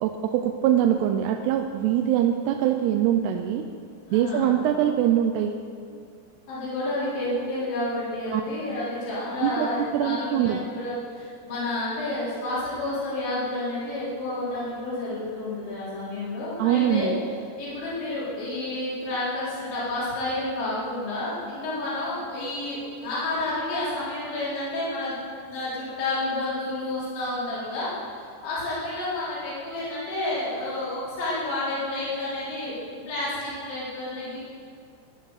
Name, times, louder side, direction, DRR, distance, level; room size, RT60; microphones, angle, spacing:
voice 1, 0.0-3.7 4.1-5.6 8.3-8.4 9.4-10.6 16.6-17.1, right 11 dB, 80° right, 5 dB, 2.6 m, -23 dB
voice 2, 4.1-4.6 6.5-17.1 17.6-25.2 25.4-27.9 28.2-34.4, left 2 dB, 85° left, -9 dB, 6.6 m, -30 dB
17.5 x 10.5 x 6.6 m, 2.2 s
omnidirectional pair, 5.1 m